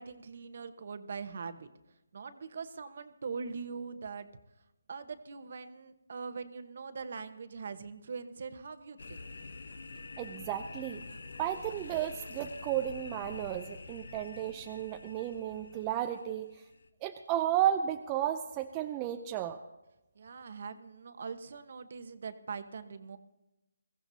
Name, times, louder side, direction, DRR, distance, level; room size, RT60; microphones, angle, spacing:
voice 1, 0.0-1.7 2.1-4.3 4.9-9.3 20.1-23.2, right 5 dB, 50° right, 10 dB, 1.1 m, -42 dB
sound 1, 9.0-16.9, left 3 dB, 70° left, 0.9 m, -47 dB
voice 2, 10.2-11.0 11.4-16.5 17.0-19.6, right 11 dB, 15° right, 5 dB, 0.5 m, -33 dB
22.0 x 16.0 x 2.8 m, 0.96 s
hypercardioid pair, 165°, 0 cm